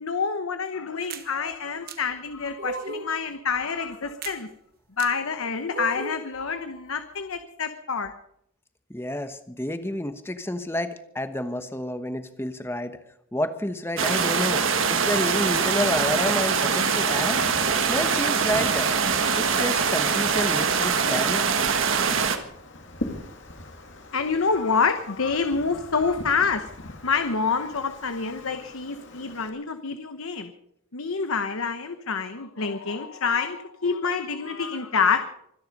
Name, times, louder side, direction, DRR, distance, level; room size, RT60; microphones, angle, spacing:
voice 1, 0.0-4.5 5.0-8.1 24.1-30.5 30.9-35.3, left 5 dB, 85° left, 8 dB, 1.0 m, -27 dB
sound 1, 1.1-1.3 1.9-2.0 2.6-3.1 4.2-4.4 5.0-5.1 5.7-6.3, right 3 dB, 45° right, 1.2 m, -34 dB
voice 2, 8.9-13.0 13.3-14.6 14.9-17.4 17.9-18.9 19.4-21.4, left 1 dB, 10° left, 9 dB, 1.0 m, -29 dB
sound 2, 14.0-22.4, right 6 dB, 70° right, 1.6 m, -23 dB
Wind, 17.2-29.5, left 1 dB, 60° left, 2.3 m, -42 dB
25.0 x 10.5 x 5.3 m, 0.74 s
head